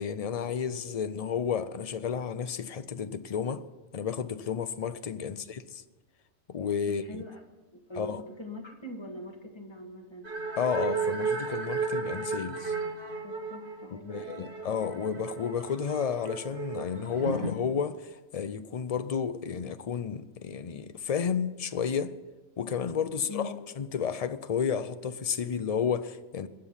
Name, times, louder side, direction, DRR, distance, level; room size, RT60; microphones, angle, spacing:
voice 1, 0.0-3.6 3.9-5.6 6.5-7.2 8.0-8.2 10.6-12.7 14.1-22.1 22.6-26.5, left 7 dB, 40° left, 0.5 m, -32 dB
voice 2, 6.9-7.4 7.7-10.3 13.2-14.6 23.1-23.6, left 1 dB, 20° left, 1.8 m, -42 dB
sound 1, 10.2-17.5, right 5 dB, 45° right, 1.6 m, -34 dB
22.0 x 8.3 x 5.7 m
omnidirectional pair, 1.3 m